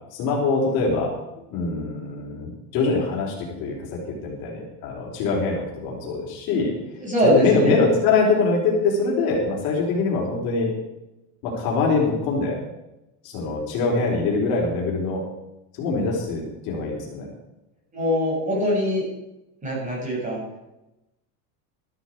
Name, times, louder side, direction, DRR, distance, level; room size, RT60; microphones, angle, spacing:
voice 1, 0.1-1.1 1.5-3.8 4.1-6.7 7.2-10.7 11.4-12.6 13.2-15.2 15.8-17.3, left 3 dB, 50° left, -2 dB, 4.6 m, -23 dB
voice 2, 7.0-7.7 17.9-19.0 19.6-20.4, equal, 15° right, -3 dB, 6.5 m, -22 dB
13.5 x 13.0 x 4.7 m, 0.94 s
supercardioid pair, 150°, 46 cm